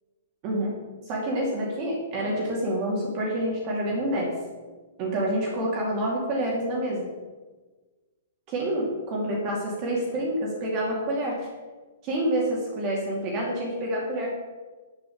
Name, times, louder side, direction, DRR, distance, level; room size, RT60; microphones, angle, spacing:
voice 1, 0.4-0.8 1.1-4.4 5.0-7.1 8.5-11.5 12.0-14.3, right 1 dB, 30° right, -3 dB, 2.5 m, -27 dB
9.2 x 8.3 x 7.1 m, 1.3 s
hypercardioid pair, 160°, 0 cm